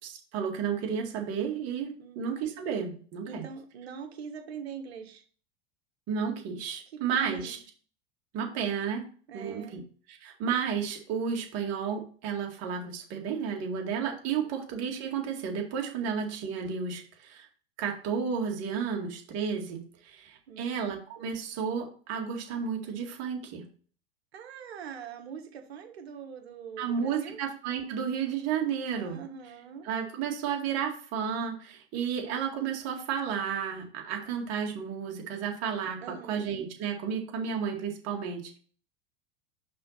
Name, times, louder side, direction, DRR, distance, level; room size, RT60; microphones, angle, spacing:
voice 1, 0.0-3.4 6.1-7.6 8.3-9.1 9.3-9.8 10.2-17.5 17.8-23.6 26.8-29.2 29.8-38.6, right 7 dB, 50° right, 2 dB, 2.0 m, -32 dB
voice 2, 2.0-2.3 3.2-5.2 6.9-7.6 9.3-9.8 14.3-14.6 16.0-16.2 20.5-20.9 24.3-27.4 28.9-29.9 36.0-36.4, right 7 dB, 85° right, 6 dB, 1.4 m, -43 dB
5.5 x 3.9 x 5.6 m, 0.43 s
hypercardioid pair, 95°, 31 cm